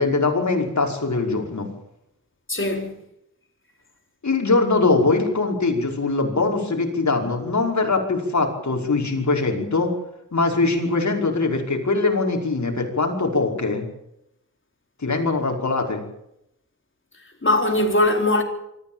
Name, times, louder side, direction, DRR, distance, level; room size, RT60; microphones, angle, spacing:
voice 1, 0.0-1.7 4.2-9.9 10.3-13.8 15.0-16.0, left 3 dB, 65° left, 5.4 m, -22 dB
voice 2, 2.5-2.9 17.4-18.4, left 1 dB, 40° left, 4.3 m, -20 dB
24.0 x 15.0 x 9.0 m
wide cardioid pair, 75°, 31 cm